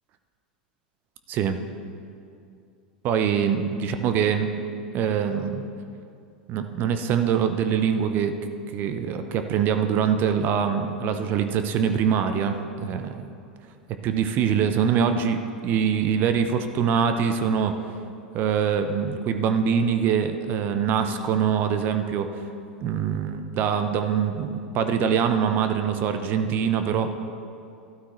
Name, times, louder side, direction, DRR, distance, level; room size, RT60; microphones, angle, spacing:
voice 1, 1.3-1.6 3.0-4.5 4.9-5.6 6.5-8.3 8.7-13.3 14.0-17.7 18.3-22.4 22.8-27.1, right 7 dB, 40° right, 8 dB, 0.7 m, -24 dB
13.0 x 12.5 x 3.2 m, 2.5 s
figure-of-eight pair, 85°, 5 cm